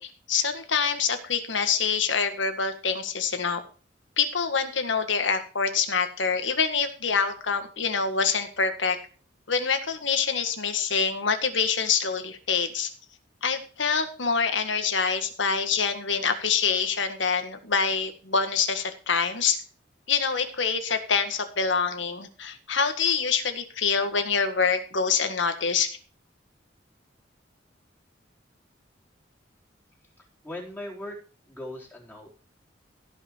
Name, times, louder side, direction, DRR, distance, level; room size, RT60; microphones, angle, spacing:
voice 1, 0.0-3.6 4.2-9.0 9.5-12.9 13.4-19.6 20.1-26.0, left 5 dB, 80° left, 8 dB, 1.8 m, -26 dB
voice 2, 30.2-31.2 31.5-32.3, left 1 dB, 10° left, -3 dB, 4.3 m, -39 dB
16.5 x 6.0 x 4.6 m, 0.39 s
head